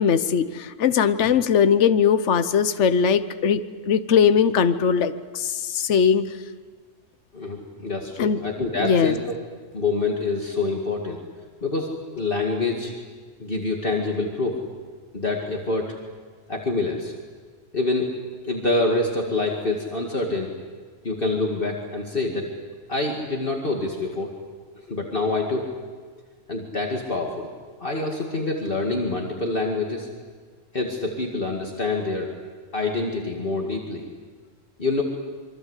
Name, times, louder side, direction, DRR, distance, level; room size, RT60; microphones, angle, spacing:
voice 1, 0.0-6.4 8.2-8.4 8.8-9.1, left 7 dB, 65° left, 11 dB, 1.2 m, -20 dB
voice 2, 7.3-9.3 9.7-11.2 11.6-12.9 13.4-14.6 15.1-16.0 16.5-17.1 17.7-18.1 18.4-20.5 21.0-22.5 22.9-24.4 24.7-25.7 26.5-27.5 27.8-30.1 30.7-32.3 32.7-34.1 34.8-35.0, left 3 dB, 45° left, 0 dB, 2.4 m, -26 dB
27.0 x 23.5 x 8.2 m, 1.5 s
omnidirectional pair, 1.3 m